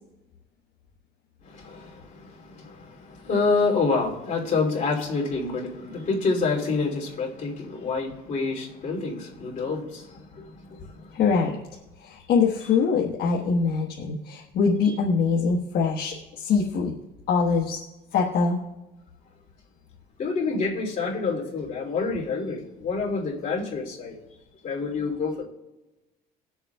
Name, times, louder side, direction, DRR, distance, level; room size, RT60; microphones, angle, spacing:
voice 1, 1.4-11.2 20.2-24.2 24.6-25.4, left 4 dB, 50° left, 2.8 m, -28 dB
voice 2, 11.1-11.6 12.0-16.9 17.3-17.8 18.1-18.6, left 5 dB, 65° left, 1.3 m, -23 dB
21.0 x 7.1 x 2.3 m
cardioid pair, 110°, 17 cm